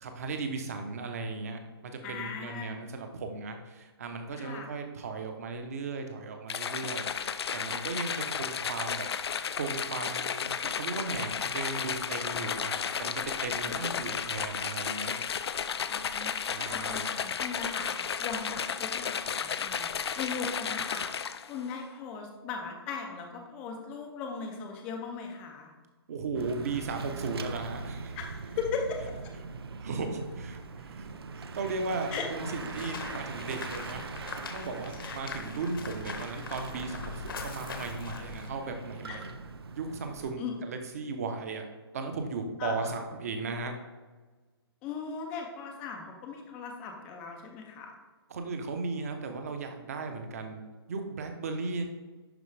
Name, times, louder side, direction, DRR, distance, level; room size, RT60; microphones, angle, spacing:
voice 1, 0.0-9.1 9.5-15.2 16.5-17.1 26.1-28.1 29.8-31.1 31.3-39.3 39.7-41.7 41.9-43.8 48.3-50.6 50.9-51.8, right 3 dB, 35° right, 5 dB, 0.8 m, -36 dB
voice 2, 2.0-2.8 4.3-4.7 14.0-14.1 15.9-16.3 16.6-19.9 20.2-21.0 21.5-25.7 28.1-29.0 32.1-32.3 35.0-35.2 39.1-39.2 40.4-40.6 42.6-42.9 44.8-48.0, left 5 dB, 10° left, 2 dB, 0.4 m, -38 dB
sound 1, 6.5-21.6, left 7 dB, 75° left, 0.5 m, -33 dB
Bicycle / Mechanisms, 26.3-40.3, right 4 dB, 65° right, 0.6 m, -41 dB
sound 2, 32.4-38.5, left 5 dB, 55° left, 1.0 m, -42 dB
11.0 x 4.5 x 3.3 m, 1.3 s
hypercardioid pair, 175°, 14 cm